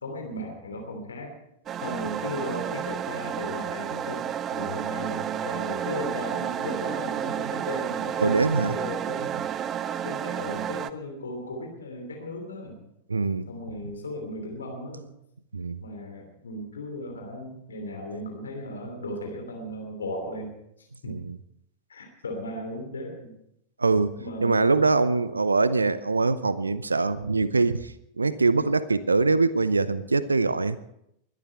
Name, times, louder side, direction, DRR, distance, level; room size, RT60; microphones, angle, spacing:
voice 1, 0.0-1.4 1.8-4.2 4.5-9.3 10.0-12.8 13.5-15.1 15.8-20.5 20.8-21.2 21.9-23.3 24.2-24.7, left 1 dB, 70° left, 3 dB, 3.0 m, -36 dB
sound 1, 1.7-10.9, right 9 dB, 30° right, 0.6 m, -31 dB
voice 2, 8.2-8.7 13.1-13.5 15.5-15.8 21.1-21.4 23.8-30.8, right 3 dB, 80° right, 16 dB, 0.7 m, -23 dB
22.0 x 12.0 x 4.5 m, 0.77 s
figure-of-eight pair, 90°, 0 cm